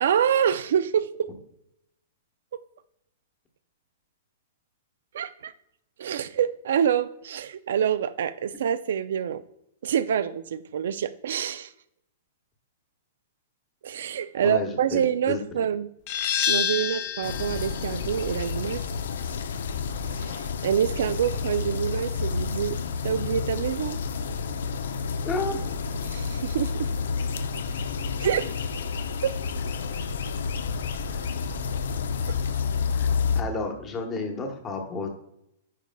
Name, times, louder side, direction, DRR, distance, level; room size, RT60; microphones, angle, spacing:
voice 1, 0.0-1.3 5.1-5.5 6.0-9.4 9.8-11.7 13.8-15.9 16.5-18.8 20.1-22.8 23.0-24.0 26.0-26.9 28.2-28.5 29.2-29.3, right 8 dB, 70° right, 14 dB, 0.3 m, -26 dB
voice 2, 14.4-15.0 15.3-15.4 25.2-25.7 31.1-31.2 32.9-35.1, left 3 dB, 20° left, 4 dB, 1.0 m, -31 dB
sound 1, 16.1-21.5, left 9 dB, 45° left, 0.7 m, -31 dB
sound 2, 17.2-33.4, left 5 dB, 80° left, 0.5 m, -30 dB
9.1 x 4.8 x 2.2 m, 0.78 s
hypercardioid pair, 155°, 0 cm